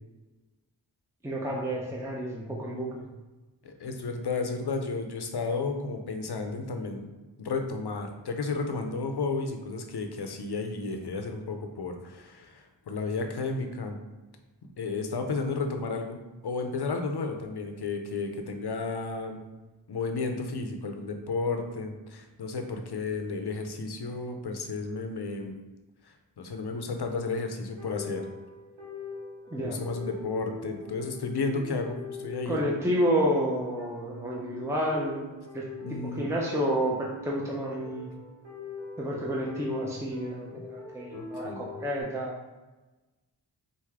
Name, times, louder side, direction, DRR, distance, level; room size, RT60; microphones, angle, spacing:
voice 1, 1.2-3.1 29.5-29.8 32.5-35.3 35.5-38.1 39.0-42.3, equal, 5° right, -3 dB, 0.6 m, -30 dB
voice 2, 3.6-7.1 7.4-14.0 14.8-19.4 19.9-25.5 26.0-28.2 29.6-32.6 35.8-36.3 41.1-41.7, left 3 dB, 60° left, 5 dB, 0.7 m, -33 dB
sound 1, 27.5-42.0, left 3 dB, 85° right, 1.2 m, -43 dB
4.6 x 2.6 x 3.6 m, 1.2 s
wide cardioid pair, 60°, 44 cm